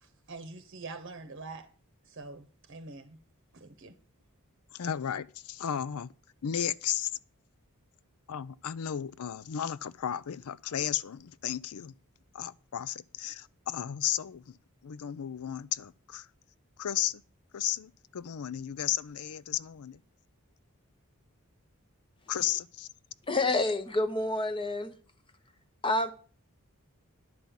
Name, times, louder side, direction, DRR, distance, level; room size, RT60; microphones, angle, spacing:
voice 1, 0.0-1.7 2.0-3.2 3.5-3.9, right 3 dB, 55° right, 0.9 m, -45 dB
voice 2, 4.7-6.1 6.4-7.1 8.3-11.9 12.3-14.6 14.8-16.3 16.8-17.2 17.5-20.0 22.3-22.9, left 10 dB, 80° left, 0.5 m, -34 dB
voice 3, 23.3-24.9 25.8-26.1, left 2 dB, 25° left, 0.8 m, -28 dB
10.5 x 5.4 x 7.2 m
head